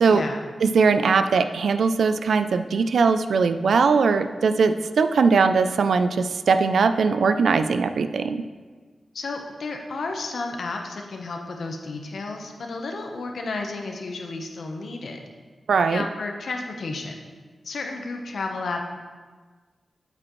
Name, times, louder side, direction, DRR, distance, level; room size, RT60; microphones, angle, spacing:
voice 1, 0.1-0.4 9.1-15.2 15.9-17.1 17.6-18.8, left 3 dB, 65° left, 3 dB, 1.0 m, -32 dB
voice 2, 0.6-8.4 15.7-16.0, right 5 dB, 80° right, 10 dB, 0.4 m, -20 dB
8.8 x 8.6 x 3.1 m, 1.5 s
wide cardioid pair, 170°, 0 cm